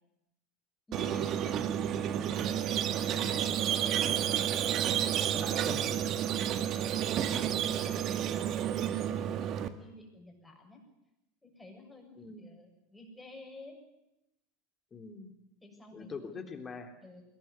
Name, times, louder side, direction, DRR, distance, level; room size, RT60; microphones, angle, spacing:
voice 1, 0.9-4.3 4.7-6.1 6.4-10.8 11.4-13.8 15.6-16.3 17.0-17.2, left 2 dB, 10° left, 2 dB, 7.1 m, -51 dB
Squeak, 0.9-9.7, right 10 dB, 45° right, 1.7 m, -30 dB
voice 2, 5.6-6.3 7.3-7.7 12.2-12.5 14.9-15.3 15.9-16.9, left 5 dB, 25° left, 5 dB, 3.4 m, -44 dB
21.0 x 19.0 x 9.6 m, 0.90 s
hypercardioid pair, 95°, 0 cm